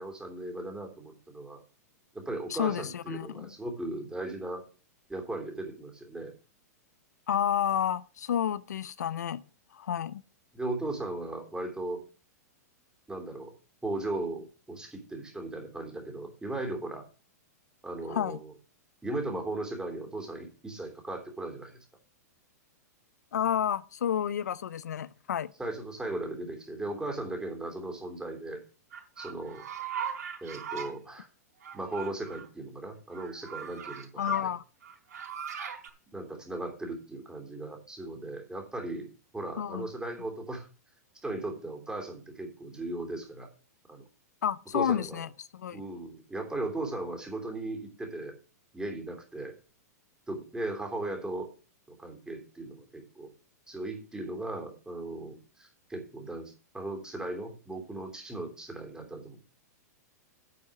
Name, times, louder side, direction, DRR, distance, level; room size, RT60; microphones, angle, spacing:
voice 1, 0.0-1.6 2.1-4.6 5.1-6.3 10.5-12.0 13.1-13.6 13.8-17.0 17.8-18.5 19.0-21.8 25.6-28.6 29.2-29.6 30.4-31.3 31.7-34.2 36.1-39.1 39.3-40.7 41.2-43.5 43.9-44.0 44.7-45.3 45.7-48.4 48.7-49.5 50.3-51.5 51.9-53.3 53.7-59.5, right 2 dB, 10° right, 3.2 m, -37 dB
voice 2, 2.5-3.5 7.3-9.4 9.7-10.2 18.1-18.4 23.3-25.5 34.2-34.6 39.6-39.9 44.4-45.8, left 9 dB, 80° left, 0.5 m, -30 dB
sound 1, 28.9-30.9 31.6-32.5 33.1-34.4 34.8-35.9, right 8 dB, 70° right, 4.1 m, -39 dB
9.4 x 5.4 x 7.7 m
hypercardioid pair, 115°, 9 cm